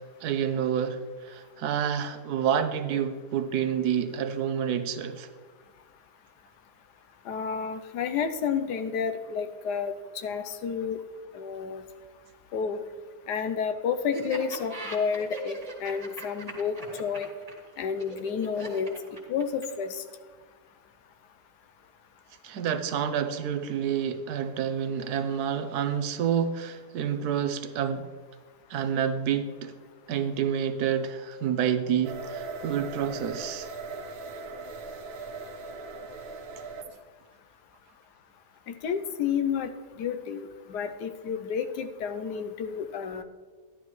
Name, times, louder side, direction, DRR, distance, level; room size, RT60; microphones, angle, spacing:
voice 1, 0.2-5.3 22.4-28.1 28.7-29.7 30.1-33.7, right 8 dB, 70° right, 1.2 m, -28 dB
voice 2, 7.3-9.9 10.2-11.0 11.3-11.8 12.5-12.8 13.3-15.6 15.8-16.7 17.0-17.3 17.8-18.9 19.3-20.0 38.8-39.7 40.0-43.2, left 6 dB, 80° left, 1.3 m, -30 dB
Laughter, 14.1-19.9, right 2 dB, 25° right, 1.7 m, -40 dB
sound 1, 32.0-37.0, right 3 dB, 55° right, 0.8 m, -39 dB
12.0 x 11.0 x 3.1 m
omnidirectional pair, 1.8 m